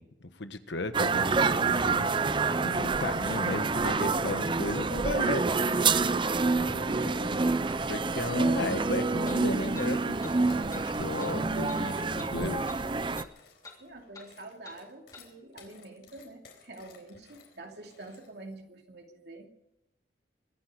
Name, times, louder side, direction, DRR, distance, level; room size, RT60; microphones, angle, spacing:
voice 1, 0.0-2.3 2.6-6.1 6.6-7.2 7.9-10.0 10.4-12.7, left 2 dB, 80° left, 10 dB, 1.3 m, -35 dB
sound 1, 0.9-13.2, right 4 dB, 25° right, 0.6 m, -27 dB
voice 2, 6.9-7.4 7.7-8.1 9.8-9.9 13.8-19.5, right 2 dB, 65° right, 2 dB, 2.8 m, -47 dB
sound 2, 7.1-9.1 9.7-18.5, left 5 dB, 65° left, 4.3 m, -58 dB
sound 3, 7.7-7.8 9.3-9.4 9.8-9.9 10.2-10.4 10.7-10.9 11.2-11.3 11.7-11.8 12.2-12.3 12.7-12.8 13.2-13.3 13.6-13.8 14.1-14.3 14.6-14.8 15.1-15.3, left 3 dB, 20° left, 3.0 m, -48 dB
24.0 x 10.5 x 5.0 m, 0.89 s
head